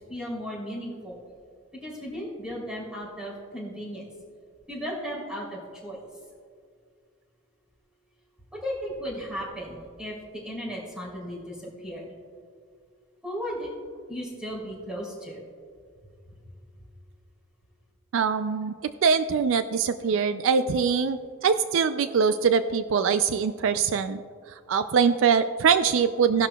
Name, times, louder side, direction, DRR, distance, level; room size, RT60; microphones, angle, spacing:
voice 1, 0.1-1.2 1.8-4.0 4.7-6.0 8.5-12.1 13.2-13.7 14.1-15.4, equal, 5° right, -5 dB, 3.1 m, -35 dB
voice 2, 18.1-24.2 24.7-26.5, right 6 dB, 65° right, 11 dB, 0.3 m, -23 dB
16.5 x 11.5 x 2.3 m, 2.1 s
head